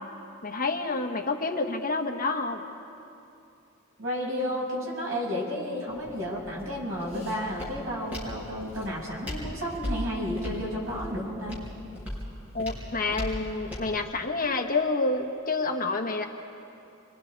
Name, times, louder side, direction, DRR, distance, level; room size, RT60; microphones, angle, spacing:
voice 1, 0.4-2.6 12.5-16.2, left 3 dB, 40° left, 3 dB, 1.4 m, -28 dB
voice 2, 4.0-11.6, equal, 70° right, -3 dB, 6.2 m, -32 dB
Walk footsteps, 5.9-14.0, left 1 dB, 5° right, 5.7 m, -38 dB
29.5 x 24.0 x 4.7 m, 2.7 s
head